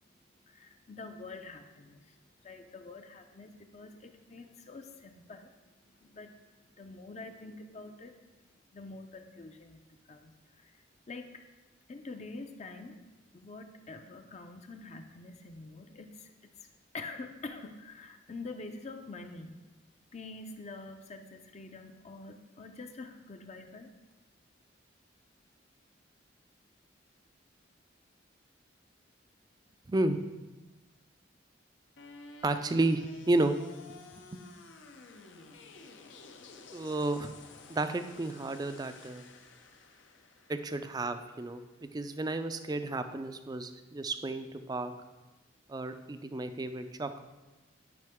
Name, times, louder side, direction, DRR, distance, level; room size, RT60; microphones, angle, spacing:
voice 1, 0.0-8.4 8.7-10.3 10.6-11.4 11.9-13.0 13.3-16.5 16.9-19.6 20.1-23.9, left 3 dB, 35° left, 6 dB, 0.5 m, -46 dB
voice 2, 29.9-30.2 32.4-33.6 34.3-34.4 36.7-37.3 37.7-39.2 40.5-41.6 41.9-44.9 45.7-47.2, right 2 dB, 20° right, 9 dB, 0.4 m, -32 dB
sound 1, 32.0-42.0, left 3 dB, 75° left, 0.7 m, -53 dB
9.5 x 5.1 x 3.5 m, 1.2 s
head